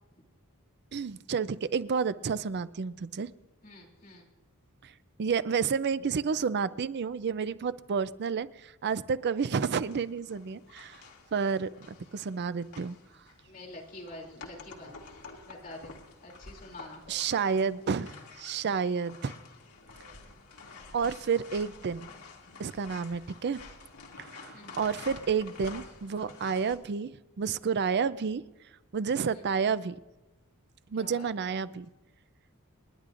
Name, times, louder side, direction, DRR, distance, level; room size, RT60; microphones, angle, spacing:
voice 1, 0.9-3.3 4.8-4.9 5.2-11.0 11.3-13.0 17.1-19.3 20.9-22.1 22.6-23.6 24.2-28.4 28.9-30.0 30.9-31.9, right 6 dB, 50° right, 15 dB, 0.5 m, -30 dB
voice 2, 3.6-4.3 13.5-14.9 15.5-15.9 16.2-17.2 24.5-24.8 29.3-29.4 31.0-31.3, left 1 dB, 40° left, -1 dB, 2.9 m, -46 dB
sound 1, 9.8-26.8, left 4 dB, 90° left, 2.0 m, -49 dB
29.0 x 10.5 x 2.5 m, 1.1 s
head